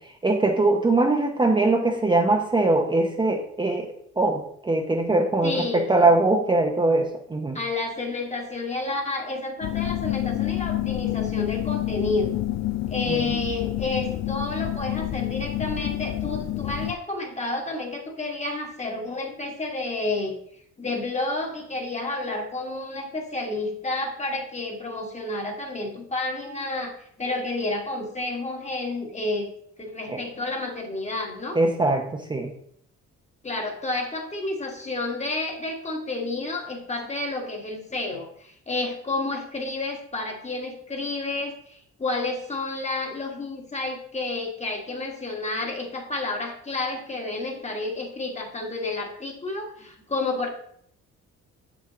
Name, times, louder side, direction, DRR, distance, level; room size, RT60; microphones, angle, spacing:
voice 1, 0.2-3.9 4.2-7.6 13.1-13.3 30.1-30.2 31.6-32.5, right 2 dB, 15° right, 1 dB, 0.7 m, -22 dB
voice 2, 5.4-6.2 7.5-12.4 12.9-20.4 20.8-29.5 29.8-31.6 33.4-50.5, left 2 dB, 20° left, 1 dB, 1.4 m, -30 dB
sound 1, 9.6-16.9, left 15 dB, 60° left, 0.4 m, -28 dB
7.2 x 6.0 x 2.8 m, 0.68 s
cardioid pair, 90°, 30 cm